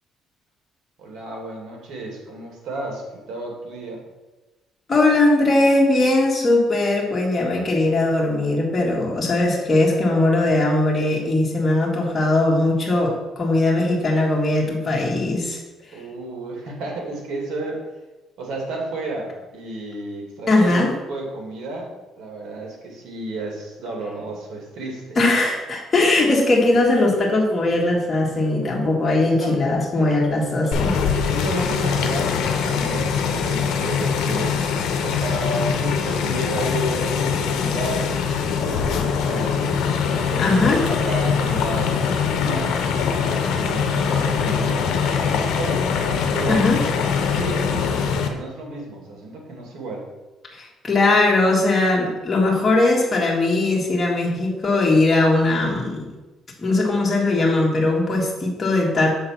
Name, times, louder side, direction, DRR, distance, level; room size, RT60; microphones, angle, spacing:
voice 1, 1.0-4.0 15.9-17.8 18.4-25.2 29.1-29.5 29.9-30.2 31.3-33.1 33.4-34.6 35.0-38.1 38.6-42.7 43.2-45.9 46.3-46.7 47.2-50.1, right 2 dB, 70° right, 0 dB, 2.2 m, -32 dB
voice 2, 4.9-15.6 20.5-20.9 25.2-31.0 40.4-40.8 46.5-46.8 50.6-56.0 56.6-59.2, left 2 dB, 25° left, -2 dB, 1.9 m, -19 dB
sound 1, 30.7-48.3, left 6 dB, 80° left, 0.8 m, -22 dB
7.2 x 3.8 x 5.8 m, 1.1 s
cardioid pair, 110°, 0 cm